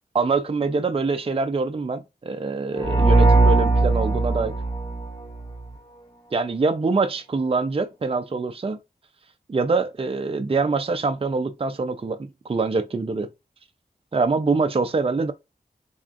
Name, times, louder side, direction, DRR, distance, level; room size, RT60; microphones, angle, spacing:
voice 1, 0.1-4.5 6.3-8.8 9.5-13.3 14.1-15.3, right 4 dB, 35° right, 0.5 m, -24 dB
sound 1, 2.8-5.6, right 2 dB, 20° left, 0.9 m, -19 dB
3.7 x 3.5 x 2.5 m
wide cardioid pair, 85°, 17 cm